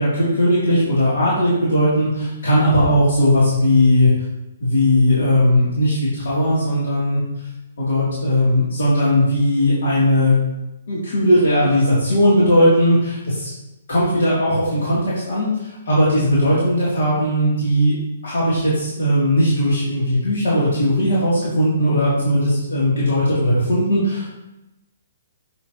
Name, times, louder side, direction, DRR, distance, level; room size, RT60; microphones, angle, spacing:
voice 1, 0.0-4.1 4.6-7.2 7.8-10.4 10.9-13.5 13.9-17.9 18.2-24.3, equal, 75° left, -8 dB, 2.7 m, -18 dB
7.9 x 6.6 x 2.9 m, 0.96 s
hypercardioid pair, 155°, 0 cm